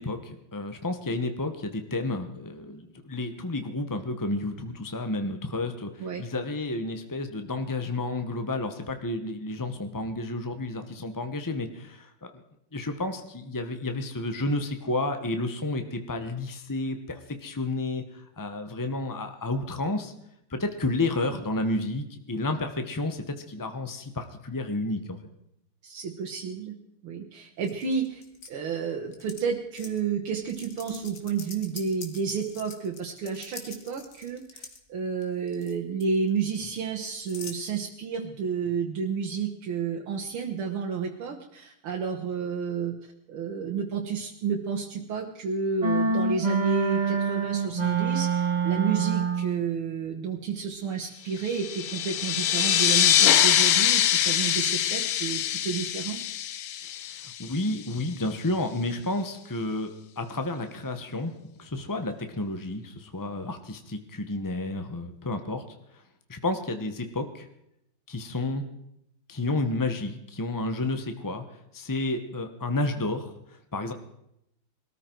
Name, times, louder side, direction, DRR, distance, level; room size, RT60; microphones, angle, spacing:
voice 1, 0.0-12.3 12.7-20.1 20.5-25.2 56.8-61.3 61.6-65.6 65.9-66.0 66.3-67.5 68.1-68.6 69.3-71.4 71.7-73.9, left 2 dB, 25° left, 7 dB, 0.4 m, -31 dB
voice 2, 25.8-26.8 27.0-28.2 28.5-43.0 43.3-56.2, right 6 dB, 80° right, -1 dB, 2.1 m, -31 dB
sound 1, 27.6-28.5 29.1-29.4 29.8-30.0 30.5-34.8 35.2-35.7 36.0-37.6, left 5 dB, 45° left, 2.0 m, -44 dB
sound 2, 45.8-49.6, right 5 dB, 30° right, 0.8 m, -26 dB
sound 3, 51.4-57.7, left 10 dB, 70° left, 0.9 m, -24 dB
21.0 x 13.5 x 4.5 m, 0.79 s
omnidirectional pair, 2.3 m